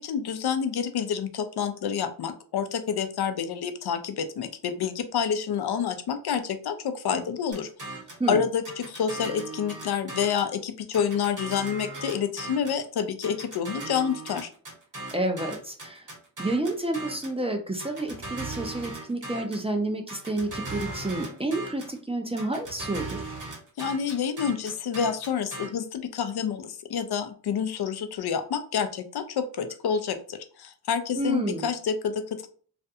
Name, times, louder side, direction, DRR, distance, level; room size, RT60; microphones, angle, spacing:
voice 1, 0.0-7.7 8.3-14.5 23.8-32.5, left 7 dB, 70° left, 9 dB, 0.5 m, -28 dB
sound 1, 7.5-8.3 8.7-10.5 10.9-12.8 13.2-17.4 17.8-19.7 20.1-22.0 22.4-25.7, right 2 dB, 50° right, 1.1 m, -38 dB
voice 2, 15.1-16.1 16.4-23.2 31.2-31.7, right 2 dB, 15° right, 3 dB, 0.5 m, -29 dB
2.5 x 2.2 x 2.6 m, 0.43 s
cardioid pair, 55°, 40 cm